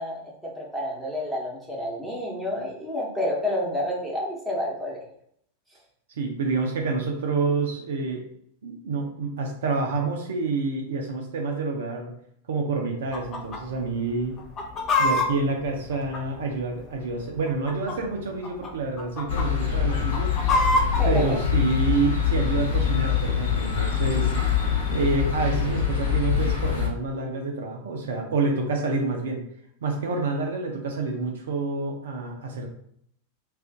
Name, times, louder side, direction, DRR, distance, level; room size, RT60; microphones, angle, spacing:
voice 1, 0.0-5.0 21.0-21.4, left 1 dB, 5° right, -4 dB, 1.0 m, -29 dB
voice 2, 6.2-8.2 8.6-12.1 12.5-14.3 15.0-20.3 21.0-24.3 24.9-29.4 29.8-32.7, right 3 dB, 60° right, 1 dB, 0.5 m, -28 dB
Chicken rooster, 13.1-13.6 13.9-14.0 14.4-16.7 17.4-18.1 18.4-18.7 19.0-19.5 19.9-21.0, left 2 dB, 30° left, 0.6 m, -25 dB
sound 1, 19.3-26.9, left 8 dB, 60° left, 0.8 m, -24 dB
2.5 x 2.4 x 3.6 m, 0.68 s
figure-of-eight pair, 90°, 0 cm